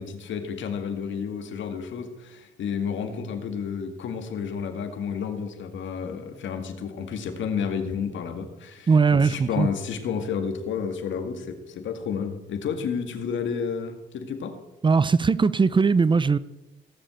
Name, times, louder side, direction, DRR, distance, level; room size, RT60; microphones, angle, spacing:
voice 1, 0.0-14.6, left 6 dB, 70° left, 2.1 m, -31 dB
voice 2, 8.9-9.7 14.8-16.4, right 5 dB, 25° right, 0.5 m, -20 dB
17.0 x 7.3 x 7.8 m
cardioid pair, 90°, 20 cm